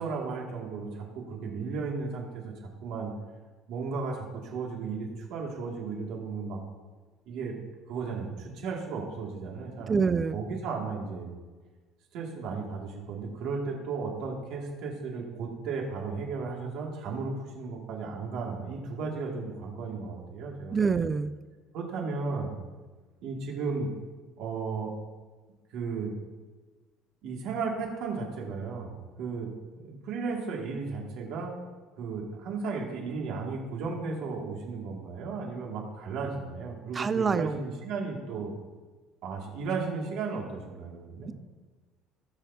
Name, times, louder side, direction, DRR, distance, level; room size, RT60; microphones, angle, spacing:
voice 1, 0.0-3.1 3.7-6.6 7.3-7.6 7.9-11.3 12.1-20.8 21.7-22.6 23.2-23.9 24.4-25.0 25.7-26.1 27.2-29.5 29.8-31.5 32.0-38.5 39.2-41.3, right 4 dB, 55° right, -1 dB, 2.4 m, -35 dB
voice 2, 9.9-10.4 20.7-21.3 36.9-37.6, right 5 dB, 15° right, 13 dB, 0.3 m, -26 dB
18.0 x 8.3 x 2.8 m, 1.3 s
cardioid pair, 180°, 0 cm